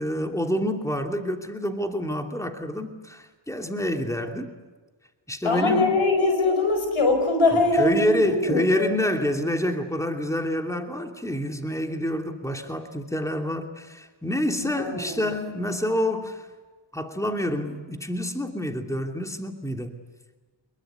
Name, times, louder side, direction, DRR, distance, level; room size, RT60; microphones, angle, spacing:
voice 1, 0.0-4.5 5.3-5.9 7.5-16.5 16.9-20.0, left 1 dB, 5° left, 4 dB, 2.8 m, -27 dB
voice 2, 5.4-8.9 14.6-15.2, left 3 dB, 90° left, 5 dB, 5.1 m, -22 dB
25.0 x 22.0 x 9.7 m, 1.3 s
cardioid pair, 55°, 48 cm